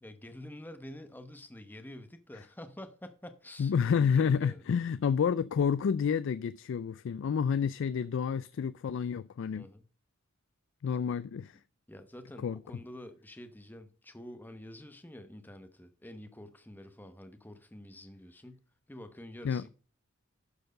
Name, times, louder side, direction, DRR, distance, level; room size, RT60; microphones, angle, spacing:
voice 1, 0.0-4.6 9.6-9.9 11.9-19.7, left 1 dB, 10° left, 0.9 m, -48 dB
voice 2, 3.6-9.7 10.8-11.6 12.4-12.6 19.4-19.6, left 7 dB, 65° left, 0.3 m, -29 dB
12.0 x 4.6 x 5.0 m
head